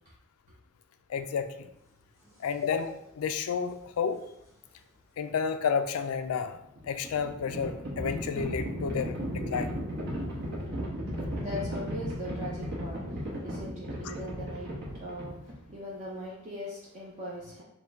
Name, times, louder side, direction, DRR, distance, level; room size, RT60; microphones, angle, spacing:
voice 1, 1.1-1.7 2.4-4.2 5.2-6.6 6.9-9.7 14.0-14.1, left 6 dB, 80° left, 9 dB, 0.4 m, -31 dB
sound 1, 1.6-5.4 6.2-7.3 7.6-12.8, equal, 15° right, 1.1 m, -51 dB
Livestock farm animals working animals, 6.6-15.7, equal, 55° right, 1.1 m, -35 dB
voice 2, 11.3-17.6, left 1 dB, 35° right, -6 dB, 0.7 m, -40 dB
4.5 x 2.2 x 3.5 m, 0.79 s
head